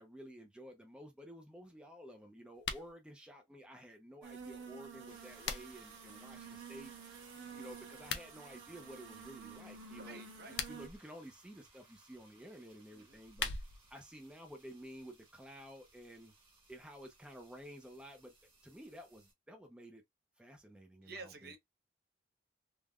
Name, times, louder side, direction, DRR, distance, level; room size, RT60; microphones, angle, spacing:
voice 1, 0.0-6.9 7.6-10.2 10.7-13.5 13.9-16.3 16.7-18.3 18.6-20.0 20.4-21.5, equal, 5° right, 0.4 m, -52 dB
sound 1, 2.5-2.9 4.9-5.9 7.9-8.3 10.3-11.0 13.0-13.9, left 6 dB, 70° left, 0.4 m, -41 dB
sound 2, 4.2-10.9, right 5 dB, 90° right, 0.9 m, -51 dB
sound 3, 5.1-19.3, right 3 dB, 25° right, 1.0 m, -64 dB
voice 2, 7.4-7.7 10.0-10.6 12.9-13.2 21.0-21.6, right 3 dB, 55° right, 0.7 m, -51 dB
3.4 x 2.1 x 2.3 m
head